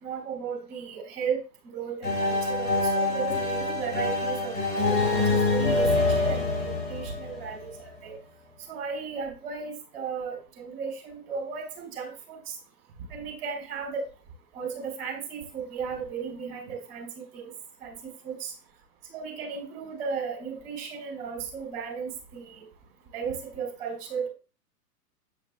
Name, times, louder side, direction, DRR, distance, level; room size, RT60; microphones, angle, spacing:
voice 1, 0.0-4.5 4.9-5.0 5.3-8.2 8.7-12.6 13.1-14.0 14.5-17.1 17.3-17.5 17.8-18.5 19.1-22.6 23.1-24.3, right 6 dB, 35° right, 2 dB, 3.8 m, -35 dB
sound 1, 2.0-7.8, left 2 dB, 50° left, 3.2 m, -26 dB
8.8 x 5.3 x 2.3 m, 0.35 s
hypercardioid pair, 135°, 49 cm